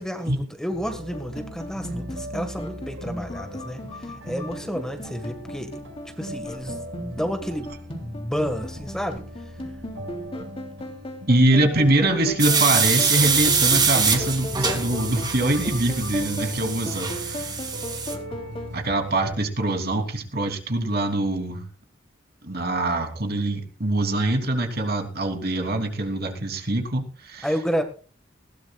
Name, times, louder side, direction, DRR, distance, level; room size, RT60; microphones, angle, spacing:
voice 1, 0.0-5.7 6.2-7.7 8.0-9.2 27.4-27.8, equal, 5° left, 5 dB, 1.6 m, -30 dB
sound 1, 0.7-19.3, equal, 75° right, 6.4 m, -39 dB
sound 2, 1.1-18.7, left 1 dB, 30° left, 3.3 m, -37 dB
voice 2, 11.3-17.6 18.7-21.6 22.4-27.5, right 1 dB, 55° right, 3 dB, 3.2 m, -24 dB
sound 3, 12.4-18.1, right 5 dB, 20° right, 2.6 m, -24 dB
20.0 x 17.0 x 2.4 m, 0.37 s
head